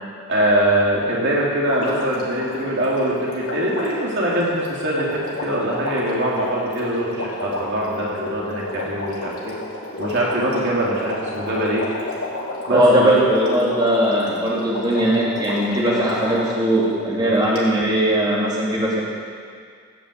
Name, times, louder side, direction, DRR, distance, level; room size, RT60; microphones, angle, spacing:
voice 1, 0.3-9.5 10.0-11.8 12.7-13.1 17.2-17.3, right 1 dB, 50° right, -5 dB, 2.9 m, -22 dB
Water, 1.6-16.6 17.6-17.7, left 2 dB, 80° left, 3.6 m, -32 dB
voice 2, 12.7-19.0, right 1 dB, 20° right, -6 dB, 3.2 m, -19 dB
17.0 x 8.4 x 8.6 m, 2.1 s
head